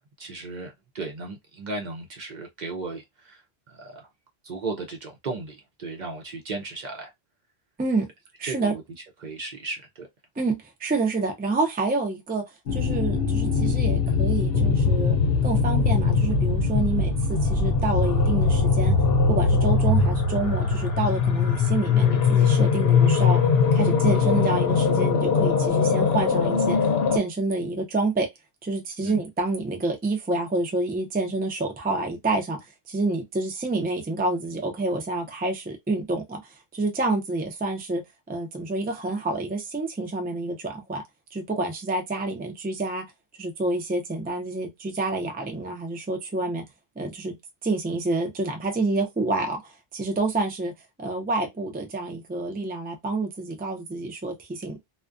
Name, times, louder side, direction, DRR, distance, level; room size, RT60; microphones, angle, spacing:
voice 1, 0.0-4.1 4.4-7.1 8.4-8.8 9.2-10.1 29.0-29.2, right 3 dB, 55° right, 0.6 m, -35 dB
voice 2, 8.4-8.7 10.4-12.4 12.7-19.0 19.3-23.4 23.7-28.3 28.6-32.6 32.9-38.0 38.3-41.0 41.3-43.0 43.4-46.6 47.0-47.4 47.6-50.7 51.0-54.8, right 2 dB, 15° right, 0.4 m, -28 dB
sound 1, 12.7-27.2, left 5 dB, 70° left, 0.8 m, -21 dB
2.3 x 2.2 x 2.4 m
omnidirectional pair, 1.0 m